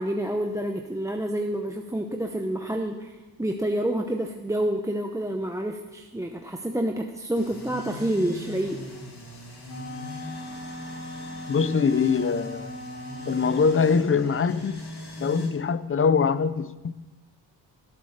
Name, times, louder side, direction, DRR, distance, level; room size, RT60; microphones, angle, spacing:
voice 1, 0.0-3.1 3.4-8.8, right 1 dB, 5° right, 4 dB, 0.8 m, -28 dB
sound 1, 7.3-15.5, left 2 dB, 65° left, 3.3 m, -40 dB
Wind instrument woodwind instrument, 9.7-14.0, equal, 50° left, 3.2 m, -39 dB
voice 2, 11.5-12.7 13.3-14.8 15.2-16.9, left 5 dB, 30° left, 15 dB, 0.6 m, -23 dB
15.0 x 8.5 x 6.5 m, 1.1 s
cardioid pair, 100°, 42 cm